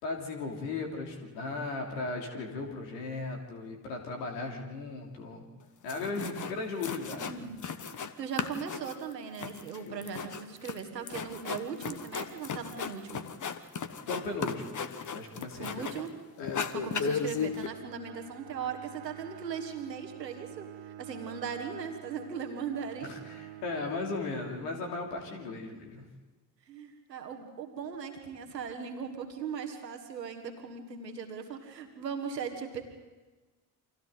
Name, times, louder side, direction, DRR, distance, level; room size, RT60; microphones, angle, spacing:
voice 1, 0.0-5.4 5.8-7.3 14.1-14.8 15.1-16.0 16.4-16.7 23.0-26.0, left 3 dB, 75° left, 1 dB, 3.1 m, -37 dB
sound 1, 5.6-5.7 5.9-6.5 6.8-8.1 8.4-16.1 16.4-17.7, left 6 dB, 40° left, 1.4 m, -36 dB
voice 2, 7.1-7.7 8.2-13.3 15.6-16.1 16.7-23.1 26.6-32.9, right 6 dB, 85° right, 5 dB, 1.7 m, -39 dB
Bowed string instrument, 16.8-25.0, right 12 dB, 60° right, 1.4 m, -48 dB
29.0 x 25.0 x 4.0 m, 1.2 s
figure-of-eight pair, 45°, 48 cm